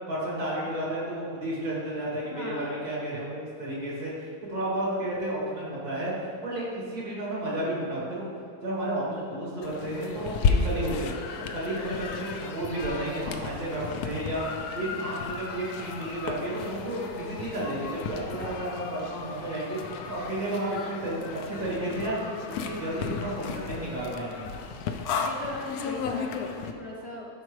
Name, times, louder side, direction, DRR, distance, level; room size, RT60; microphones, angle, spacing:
voice 1, 0.1-4.1 4.5-8.3 8.6-11.1 11.5-22.3 22.6-24.5, right 1 dB, 70° right, -6 dB, 2.7 m, -32 dB
voice 2, 2.3-2.8 25.2-27.3, left 1 dB, 45° left, -3 dB, 0.9 m, -38 dB
sound 1, 9.6-26.7, left 5 dB, 70° left, 1.0 m, -33 dB
11.5 x 4.9 x 3.2 m, 2.4 s
omnidirectional pair, 1.7 m